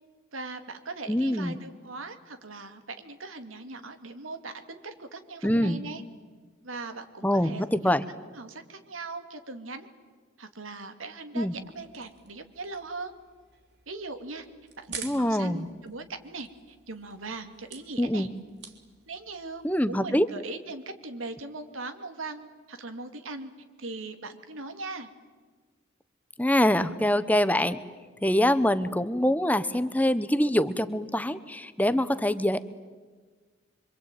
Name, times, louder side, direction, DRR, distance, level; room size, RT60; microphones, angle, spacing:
voice 1, 0.3-6.0 6.6-7.9 8.3-9.9 10.4-13.1 13.9-14.5 14.8-18.3 19.1-23.5 23.8-25.1, right 3 dB, 85° right, 7 dB, 2.5 m, -40 dB
voice 2, 1.1-1.6 5.4-5.8 7.2-8.0 11.3-11.5 15.0-15.7 18.0-18.3 19.6-20.3 26.4-27.8 28.2-32.6, left 1 dB, 10° left, 13 dB, 0.9 m, -24 dB
sound 1, 11.4-20.0, right 7 dB, 55° right, 3.2 m, -48 dB
26.0 x 25.5 x 9.1 m, 1.4 s
head